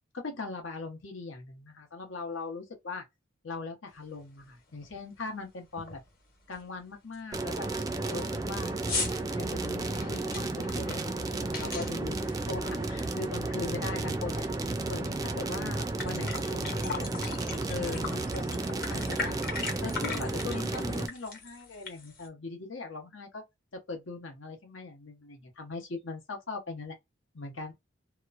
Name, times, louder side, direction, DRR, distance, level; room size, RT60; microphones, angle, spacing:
voice 1, 0.1-3.0 3.4-6.0 6.5-7.7 8.1-8.7 9.3-12.2 12.5-12.6 12.9-14.5 14.9-17.1 17.7-19.4 19.8-23.4 23.7-26.9 27.3-27.7, left 3 dB, 85° left, 1.0 m, -40 dB
sound 1, 4.1-4.2 4.7-5.0 5.3-5.4 5.8-6.1 6.5-6.6 7.1-7.2 7.5-13.5 13.8-15.1 15.5-15.6 15.8-22.3, left 4 dB, 45° left, 1.1 m, -39 dB
sound 2, 7.3-21.1, right 2 dB, 20° right, 0.3 m, -33 dB
2.9 x 2.1 x 2.5 m
head